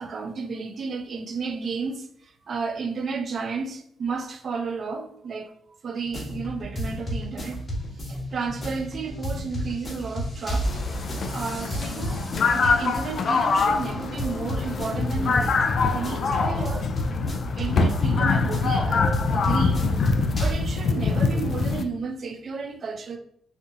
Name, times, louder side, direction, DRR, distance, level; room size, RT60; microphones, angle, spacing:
voice 1, 0.0-7.7 7.9-10.8 11.3-16.9 17.6-23.2, right 4 dB, 50° right, 0.5 m, -33 dB
sound 1, 6.0-20.5, equal, 35° left, 1.2 m, -33 dB
sound 2, 10.6-21.8, left 4 dB, 55° left, 0.4 m, -24 dB
4.2 x 2.5 x 2.5 m
cardioid pair, 95°, 0 cm